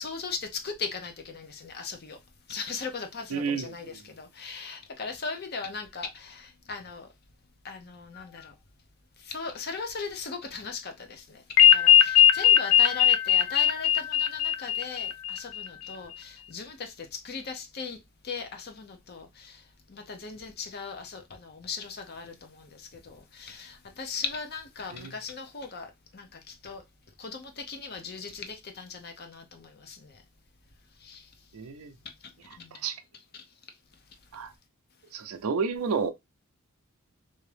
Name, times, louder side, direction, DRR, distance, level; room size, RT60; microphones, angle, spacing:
voice 1, 0.0-2.2 2.5-7.1 7.6-8.5 9.2-18.0 18.2-19.6 19.9-26.8 27.2-30.2 31.0-31.3 32.6-32.8 33.3-33.4, left 5 dB, 45° left, 0.7 m, -38 dB
voice 2, 3.3-3.9 24.9-25.1 31.5-31.9 32.7-33.0 34.3-34.5 35.1-36.1, right 5 dB, 80° right, 0.5 m, -31 dB
sound 1, 11.6-15.7, left 10 dB, 85° left, 0.3 m, -19 dB
3.4 x 2.7 x 3.3 m
head